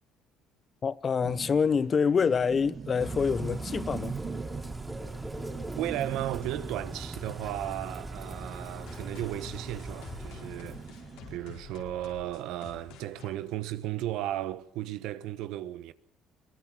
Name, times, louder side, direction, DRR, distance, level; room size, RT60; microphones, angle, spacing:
voice 1, 0.8-4.1, left 6 dB, 35° left, 1.0 m, -26 dB
sound 1, 1.2-11.4, right 6 dB, 35° right, 0.8 m, -42 dB
Bird / Rain, 3.0-11.1, right 1 dB, 10° right, 3.9 m, -41 dB
voice 2, 5.8-10.8 11.3-15.9, right 13 dB, 80° right, 1.2 m, -35 dB
sound 2, 8.9-14.3, left 7 dB, 85° left, 4.3 m, -49 dB
23.5 x 19.5 x 6.3 m
cardioid pair, 100°, 0 cm